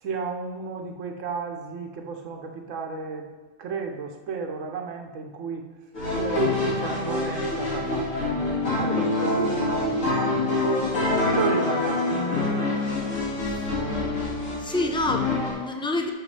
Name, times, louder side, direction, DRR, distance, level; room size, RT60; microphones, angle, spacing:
voice 1, 0.0-3.3 3.6-5.7 6.1-8.4 8.7-12.2, right 5 dB, 80° right, 3 dB, 1.2 m, -33 dB
sound 1, 5.9-15.5, left 2 dB, 90° left, 2.6 m, -25 dB
voice 2, 13.4-13.8 14.6-16.1, left 2 dB, 5° left, 4 dB, 0.4 m, -28 dB
12.5 x 6.5 x 3.3 m, 1.3 s
omnidirectional pair, 1.3 m